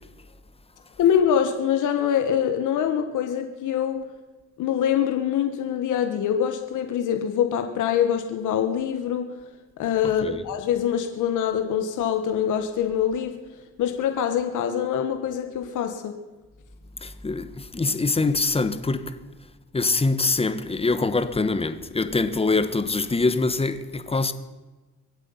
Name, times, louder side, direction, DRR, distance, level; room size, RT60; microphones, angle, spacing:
voice 1, 1.0-4.0 4.6-9.2 9.8-13.3 13.8-16.1, left 9 dB, 80° left, 1.5 m, -24 dB
voice 2, 17.0-19.2 19.7-24.3, left 3 dB, 20° left, 1.2 m, -24 dB
24.0 x 8.3 x 5.7 m
cardioid pair, 90°, 30 cm